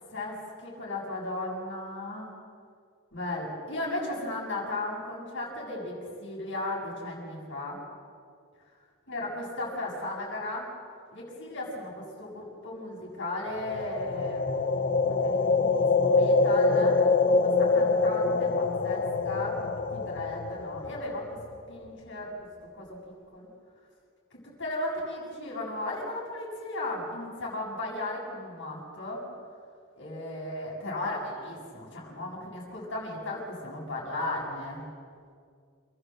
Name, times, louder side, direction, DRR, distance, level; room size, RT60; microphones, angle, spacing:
voice 1, 0.1-2.3 3.1-5.9 6.2-7.8 9.1-10.7 11.1-14.4 15.0-17.0 17.3-21.2 21.7-22.3 22.7-22.9 23.3-23.5 24.6-29.2 30.0-34.8, left 2 dB, 55° left, -3 dB, 7.6 m, -35 dB
sound 1, 13.6-21.6, left 3 dB, 40° left, 0.7 m, -25 dB
29.0 x 13.5 x 7.9 m, 2.2 s
head